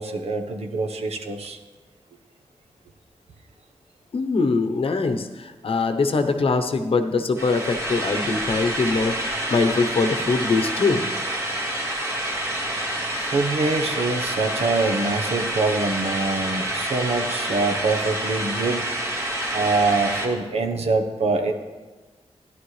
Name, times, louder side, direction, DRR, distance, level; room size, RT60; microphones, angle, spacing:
voice 1, 0.0-1.6 13.2-18.9 19.5-21.5, right 3 dB, 70° right, 5 dB, 1.1 m, -24 dB
voice 2, 4.1-11.0, left 4 dB, 55° left, 7 dB, 0.9 m, -22 dB
sound 1, 7.4-20.3, right 1 dB, 25° right, 2.0 m, -28 dB
14.0 x 11.0 x 3.3 m, 1.3 s
wide cardioid pair, 110°, 11 cm